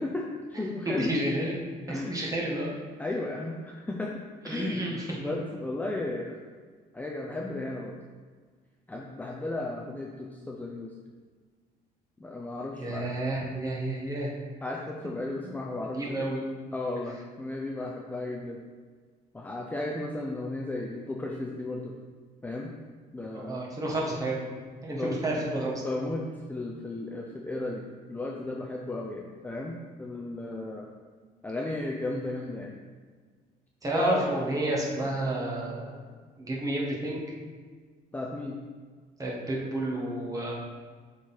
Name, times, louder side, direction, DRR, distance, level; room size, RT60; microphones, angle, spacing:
voice 1, 0.0-1.1 1.9-2.2 3.0-4.9 5.2-6.4 6.9-8.0 8.9-10.9 12.2-13.1 14.6-16.3 16.7-18.6 19.3-21.9 22.4-22.7 23.1-23.6 24.9-25.5 25.8-30.9 31.4-32.8 33.9-34.3 38.1-38.6, left 2 dB, 10° left, -1 dB, 0.6 m, -34 dB
voice 2, 0.8-1.5 1.9-2.7 4.4-5.3 12.7-14.3 15.4-15.5 15.9-16.4 23.3-24.5 24.8-25.8 33.8-36.0 36.4-37.2 39.2-40.5, right 1 dB, 20° right, -3 dB, 1.8 m, -30 dB
7.2 x 4.1 x 4.4 m, 1.5 s
cardioid pair, 110°, 17 cm